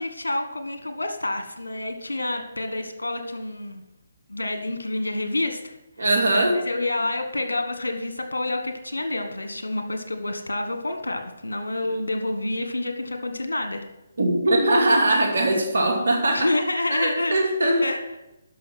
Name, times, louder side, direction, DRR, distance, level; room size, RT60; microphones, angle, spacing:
voice 1, 0.0-3.8 4.3-5.8 6.3-13.8 16.0-17.4 17.8-18.0, left 2 dB, 85° left, 7 dB, 1.4 m, -28 dB
voice 2, 6.0-6.5 14.2-16.5 16.9-17.8, right 1 dB, 75° right, 2 dB, 2.5 m, -21 dB
11.5 x 6.2 x 6.0 m, 0.96 s
figure-of-eight pair, 145°, 0 cm